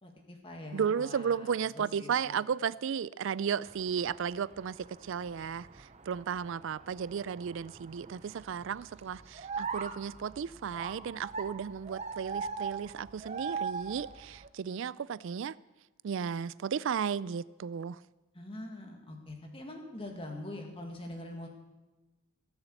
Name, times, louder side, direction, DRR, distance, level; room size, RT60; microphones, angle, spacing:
voice 1, 0.0-2.4 18.3-21.5, left 1 dB, 25° left, 1.9 m, -44 dB
voice 2, 0.7-15.6 16.0-18.0, right 7 dB, 60° right, 0.3 m, -34 dB
sound 1, 3.7-14.5, right 5 dB, 30° right, 0.7 m, -42 dB
17.0 x 7.1 x 8.0 m
head